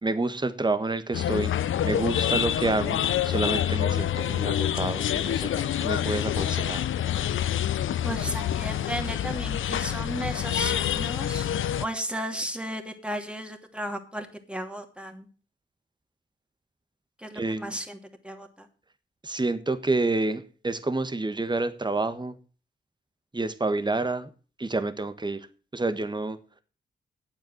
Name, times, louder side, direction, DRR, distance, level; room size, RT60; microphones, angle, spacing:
voice 1, 0.0-1.5 1.8-3.0 3.2-6.8 17.3-17.7 19.2-22.3 23.3-24.3 24.6-25.5 25.7-26.4, right 2 dB, 20° right, 10 dB, 1.5 m, -28 dB
sound 1, 1.1-11.8, left 10 dB, 75° left, 0.6 m, -27 dB
voice 2, 7.7-11.5 11.8-15.3 17.2-18.7, right 1 dB, 5° right, 5 dB, 2.8 m, -35 dB
8.9 x 8.0 x 7.9 m, 0.38 s
supercardioid pair, 40°, 21 cm